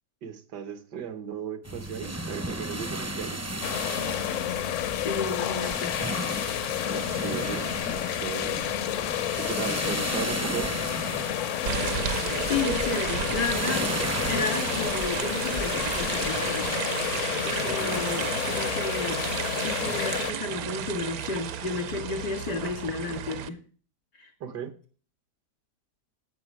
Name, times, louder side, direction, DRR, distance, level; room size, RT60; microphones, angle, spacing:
voice 1, 0.2-3.5 6.9-8.7 9.4-10.8 17.6-18.0 24.4-24.7, right 8 dB, 85° right, 10 dB, 1.8 m, -36 dB
sound 1, 1.6-16.7, right 1 dB, 20° right, 0.4 m, -35 dB
sound 2, 3.6-20.3, left 11 dB, 65° left, 0.8 m, -30 dB
voice 2, 5.0-5.9 12.5-13.9 14.3-16.8 17.4-19.2 19.6-23.6 24.1-24.3, left 4 dB, 90° left, 5 dB, 2.8 m, -32 dB
sound 3, 11.7-23.5, right 9 dB, 65° right, 1.2 m, -32 dB
15.0 x 5.8 x 4.7 m, 0.40 s
omnidirectional pair, 1.8 m